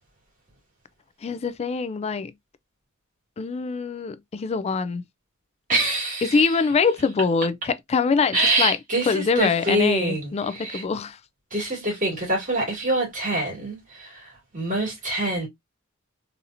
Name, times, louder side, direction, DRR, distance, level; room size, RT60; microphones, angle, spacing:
voice 1, 1.2-2.3 3.4-5.0 6.2-8.8 9.1-11.2, left 5 dB, 30° left, 0.3 m, -24 dB
voice 2, 5.7-6.6 8.3-10.8 11.5-15.5, right 1 dB, 40° right, 2.4 m, -25 dB
4.0 x 2.8 x 2.5 m
head